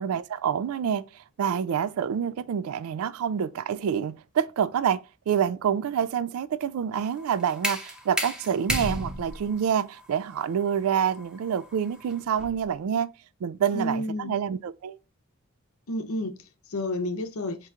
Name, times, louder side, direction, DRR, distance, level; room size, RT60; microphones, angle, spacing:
voice 1, 0.0-13.1 13.4-15.0, right 8 dB, 80° right, 0.3 m, -27 dB
sound 1, 6.9-12.7, equal, 5° right, 0.7 m, -34 dB
voice 2, 13.7-14.4 15.9-17.7, left 1 dB, 85° left, 0.7 m, -31 dB
5.5 x 3.0 x 2.4 m
head